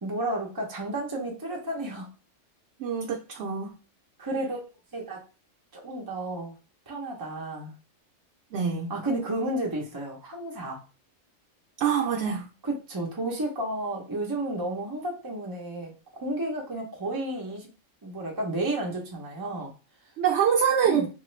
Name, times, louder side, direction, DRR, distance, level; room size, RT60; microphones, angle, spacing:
voice 1, 0.0-2.1 4.2-4.6 4.9-5.2 5.7-6.6 6.9-7.7 8.9-10.8 12.6-17.7 18.0-19.7 20.8-21.1, right 1 dB, 30° right, -1 dB, 0.4 m, -32 dB
voice 2, 2.8-3.7 8.5-8.9 11.8-12.5 20.2-21.1, right 7 dB, 70° right, 0 dB, 0.8 m, -25 dB
3.0 x 2.4 x 3.1 m, 0.33 s
omnidirectional pair, 1.3 m